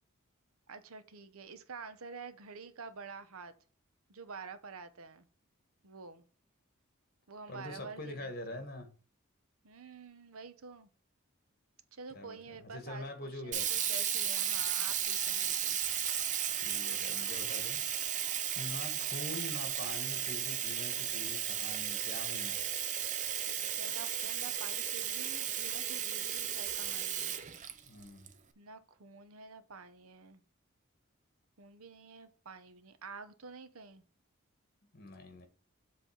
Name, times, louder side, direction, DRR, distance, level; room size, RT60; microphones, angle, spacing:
voice 1, 0.7-3.5 4.1-5.3 5.8-6.2 7.3-8.3 9.6-10.9 11.9-15.8 23.8-27.4 28.6-30.4 31.6-34.0, right 4 dB, 85° right, 0.9 m, -49 dB
voice 2, 7.5-8.9 12.1-13.7 16.6-17.8 18.5-22.6 27.9-28.3 34.8-35.5, left 2 dB, 45° left, 1.7 m, -44 dB
Sink (filling or washing), 13.5-28.3, right 9 dB, 35° right, 0.6 m, -34 dB
7.7 x 3.4 x 6.4 m
head